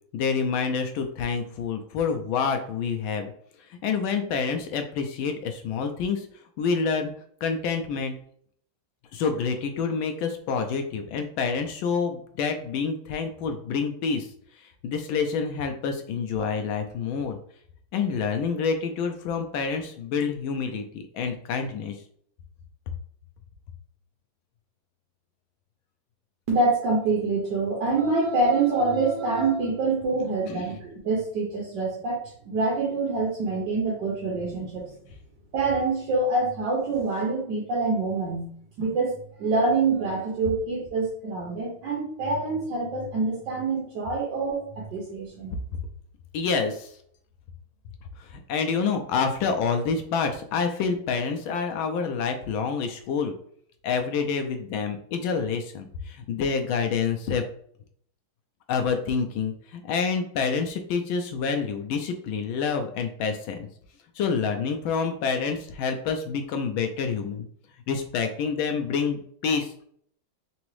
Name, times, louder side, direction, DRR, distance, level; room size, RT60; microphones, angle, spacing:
voice 1, 0.1-3.3 3.7-6.3 6.6-7.1 7.4-8.1 9.1-14.3 14.8-17.4 17.9-22.0 30.5-30.7 46.3-47.0 48.2-53.3 53.8-57.4 58.7-63.6 64.1-67.5 67.9-69.7, left 5 dB, 75° left, 5 dB, 1.3 m, -27 dB
voice 2, 26.5-34.9 35.5-38.5 38.8-45.5, right 3 dB, 65° right, -3 dB, 1.5 m, -26 dB
4.0 x 3.5 x 3.1 m, 0.62 s
omnidirectional pair, 2.3 m